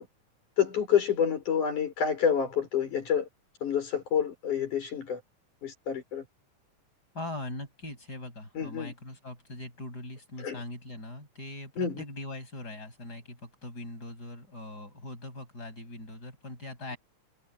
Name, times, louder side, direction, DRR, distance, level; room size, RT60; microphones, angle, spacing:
voice 1, 0.6-3.3 3.6-5.2 5.6-6.2 8.6-8.9 10.4-10.6 11.8-12.0, left 8 dB, 85° left, 7.6 m, -28 dB
voice 2, 7.1-17.0, left 1 dB, 30° left, 8.7 m, -41 dB
omnidirectional pair, 3.4 m